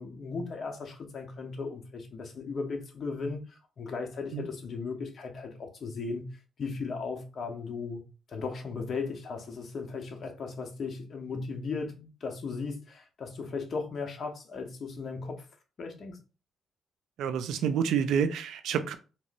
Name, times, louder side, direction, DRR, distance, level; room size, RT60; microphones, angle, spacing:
voice 1, 0.0-8.0 8.3-15.5 15.8-16.2, left 4 dB, 50° left, 0.9 m, -37 dB
voice 2, 17.2-18.9, right 7 dB, 80° right, 0.4 m, -28 dB
3.6 x 2.9 x 2.6 m
cardioid pair, 90°, 0 cm